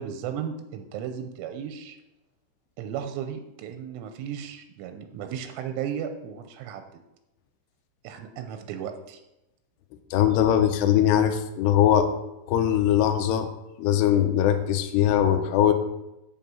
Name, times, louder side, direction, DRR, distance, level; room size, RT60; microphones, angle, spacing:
voice 1, 0.0-2.0 2.8-6.8 8.0-9.2, right 8 dB, 90° right, 7 dB, 3.3 m, -35 dB
voice 2, 10.1-12.1 12.5-13.5 13.8-15.7, left 10 dB, 85° left, 6 dB, 2.5 m, -21 dB
8.5 x 5.6 x 7.6 m, 0.92 s
omnidirectional pair, 5.6 m